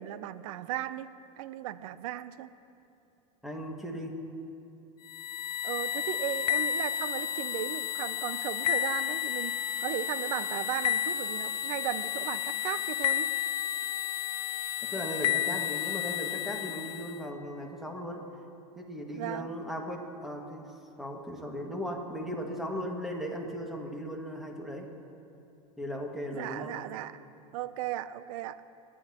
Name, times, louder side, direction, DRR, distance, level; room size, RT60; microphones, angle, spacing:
voice 1, 0.0-2.5 5.6-9.5 9.8-13.3 19.1-19.5 26.3-27.2 27.5-28.6, right 13 dB, 65° right, 15 dB, 0.6 m, -36 dB
voice 2, 3.4-4.2 14.9-18.3 18.8-20.7 21.0-24.9 25.8-26.8, equal, ahead, 1 dB, 1.9 m, -37 dB
sound 1, 5.1-17.2, left 11 dB, 80° left, 0.5 m, -32 dB
29.0 x 10.0 x 2.9 m, 2.9 s
hypercardioid pair, 100°, 19 cm